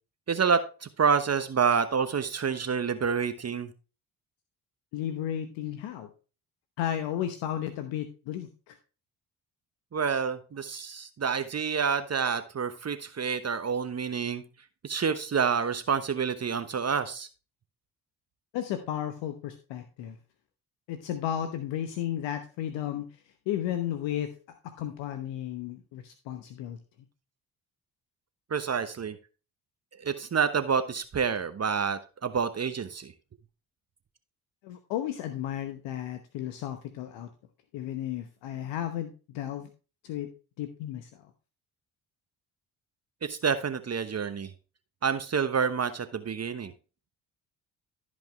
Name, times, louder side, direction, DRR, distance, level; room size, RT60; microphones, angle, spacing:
voice 1, 0.3-3.7 9.9-14.4 14.8-17.3 28.5-29.2 29.9-33.1 43.2-44.5 45.0-46.7, right 6 dB, 35° right, 10 dB, 1.1 m, -28 dB
voice 2, 4.9-6.1 6.8-8.8 18.5-20.2 20.9-23.1 23.5-24.3 24.8-26.8 34.6-37.3 37.7-39.7 40.0-40.3 40.6-41.2, left 11 dB, 70° left, 8 dB, 1.0 m, -33 dB
14.0 x 5.3 x 3.2 m, 0.34 s
hypercardioid pair, 50°, 45 cm